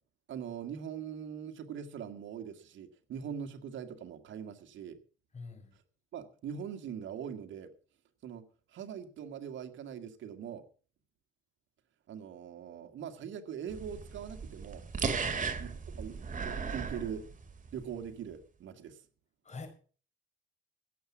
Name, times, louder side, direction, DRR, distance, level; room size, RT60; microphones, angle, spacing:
voice 1, 0.3-5.0 5.7-5.8 6.1-7.7 8.2-10.6 12.1-14.8 15.6-16.2 16.4-17.2 17.7-19.0, right 8 dB, 75° right, 7 dB, 1.9 m, -42 dB
voice 2, 5.3-5.7 15.2-15.5 19.4-19.7, left 4 dB, 35° left, 5 dB, 5.1 m, -45 dB
sound 1, 13.7-17.8, right 5 dB, 40° right, 2.5 m, -36 dB
16.5 x 7.2 x 7.3 m, 0.41 s
cardioid pair, 90°, 20 cm